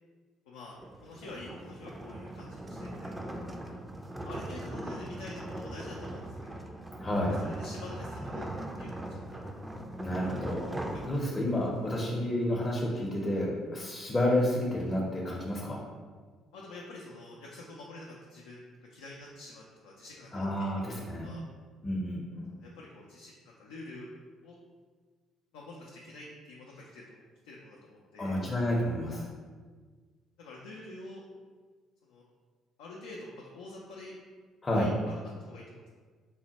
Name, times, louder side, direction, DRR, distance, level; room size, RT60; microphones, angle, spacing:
voice 1, 0.5-3.8 4.2-6.7 7.4-8.5 8.8-9.4 10.7-11.0 16.5-20.7 21.0-21.4 22.6-24.1 24.4-24.6 25.5-28.4 30.4-31.2 32.1-32.2 32.8-34.1 34.7-35.8, left 2 dB, 75° left, -3 dB, 0.4 m, -47 dB
sound 1, 0.7-11.7, right 1 dB, 15° right, 0.4 m, -40 dB
voice 2, 7.0-7.3 10.0-15.8 20.3-21.3 21.8-22.5 28.2-29.3 34.6-34.9, left 1 dB, 30° left, -3 dB, 0.6 m, -30 dB
3.9 x 2.1 x 2.8 m, 1.5 s
hypercardioid pair, 55°, 0 cm